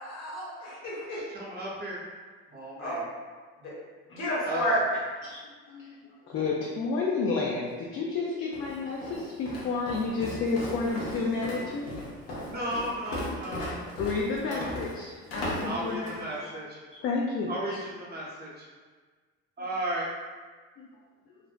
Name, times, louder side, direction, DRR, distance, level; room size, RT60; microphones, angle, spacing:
voice 1, 0.1-1.2 2.8-3.0 3.6-3.7 4.1-4.8, left 1 dB, 65° left, -7 dB, 1.2 m, -30 dB
voice 2, 1.1-2.0 2.5-3.0 4.4-4.8 12.5-13.7 14.4-14.7 15.6-16.8 17.5-18.7 19.6-20.1, right 1 dB, 35° right, -5 dB, 0.7 m, -35 dB
voice 3, 5.7-11.8 14.0-16.1 16.4-16.5 17.0-17.8 20.8-20.9, left 4 dB, 45° left, -2 dB, 0.4 m, -31 dB
Walk footsteps, 8.5-16.3, left 1 dB, 85° left, 0.7 m, -37 dB
2.5 x 2.0 x 2.4 m, 1.4 s
supercardioid pair, 80°, 29 cm